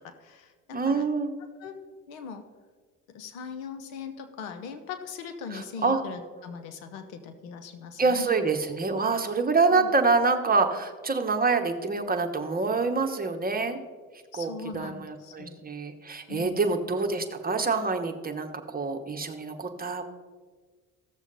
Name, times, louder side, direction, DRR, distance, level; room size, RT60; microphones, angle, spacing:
voice 1, 0.0-1.0 1.6-1.7 2.1-2.4 3.1-8.3 9.7-9.9 14.3-15.6 16.3-16.6, left 6 dB, 80° left, 8 dB, 1.1 m, -40 dB
voice 2, 0.7-1.3 5.5-6.0 8.0-13.8 14.3-20.1, right 4 dB, 20° right, 6 dB, 1.2 m, -26 dB
16.0 x 7.0 x 4.2 m, 1.5 s
hypercardioid pair, 60°, 39 cm